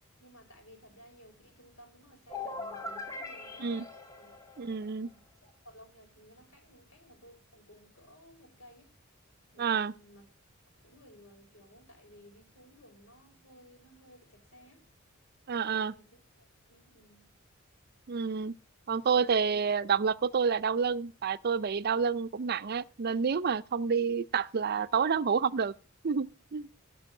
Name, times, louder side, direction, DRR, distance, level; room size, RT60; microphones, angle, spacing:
voice 1, 0.2-3.8 4.2-4.5 4.9-8.9 9.5-10.3 10.7-14.9 15.7-16.1 16.4-17.3, equal, 80° left, 5.2 m, -57 dB
sound 1, 2.3-5.1, left 3 dB, 15° left, 1.9 m, -41 dB
voice 2, 4.6-5.1 9.6-9.9 15.5-15.9 18.1-18.5 18.9-25.7 26.0-26.7, right 6 dB, 50° right, 0.5 m, -29 dB
15.0 x 6.2 x 6.0 m
head